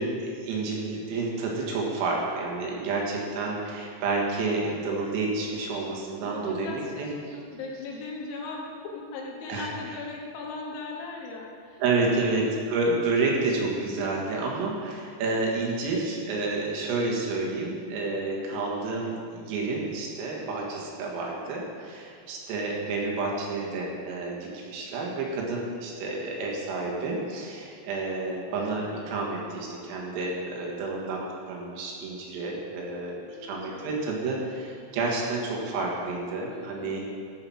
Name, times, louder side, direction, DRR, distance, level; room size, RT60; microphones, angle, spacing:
voice 1, 0.0-7.1 9.5-10.0 11.8-37.1, right 3 dB, 85° right, -2 dB, 4.3 m, -30 dB
voice 2, 6.2-11.8 33.2-34.0 36.5-37.1, left 3 dB, 70° left, -2 dB, 3.5 m, -39 dB
14.0 x 5.8 x 5.9 m, 2.3 s
omnidirectional pair, 5.9 m